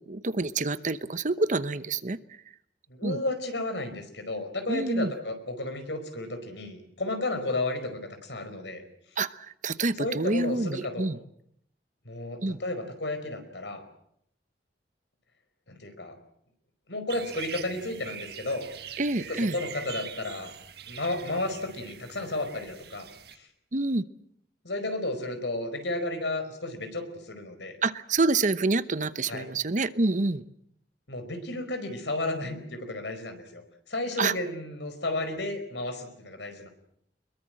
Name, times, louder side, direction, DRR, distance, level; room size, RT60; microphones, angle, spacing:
voice 1, 0.0-2.2 3.0-3.2 4.7-5.1 9.2-11.2 12.4-12.6 19.0-19.5 23.7-24.1 27.8-30.4 34.2-34.3, right 3 dB, 45° right, 14 dB, 0.9 m, -27 dB
voice 2, 2.9-8.8 10.0-11.1 12.0-13.8 15.7-16.2 16.9-18.6 19.2-20.5 20.9-23.1 23.3-23.5 24.6-27.8 29.3-29.5 31.1-33.6 33.9-36.7, left 2 dB, 90° left, 8 dB, 4.9 m, -33 dB
sound 1, 17.1-23.4, right 8 dB, 65° right, 1.6 m, -43 dB
25.0 x 22.0 x 7.7 m, 0.72 s
head